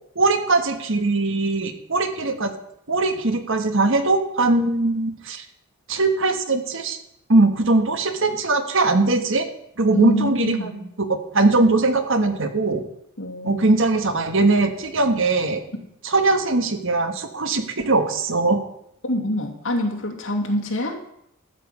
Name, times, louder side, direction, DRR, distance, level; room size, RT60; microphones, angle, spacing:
voice 1, 0.1-2.5 2.9-5.4 5.9-7.0 7.3-9.5 9.8-10.8 11.1-12.8 13.4-15.6 16.0-18.6, right 3 dB, 60° right, 8 dB, 1.4 m, -20 dB
voice 2, 9.9-10.9 13.2-13.7 19.0-21.0, left 1 dB, 60° left, 1 dB, 2.5 m, -26 dB
13.5 x 5.9 x 8.5 m, 0.76 s
head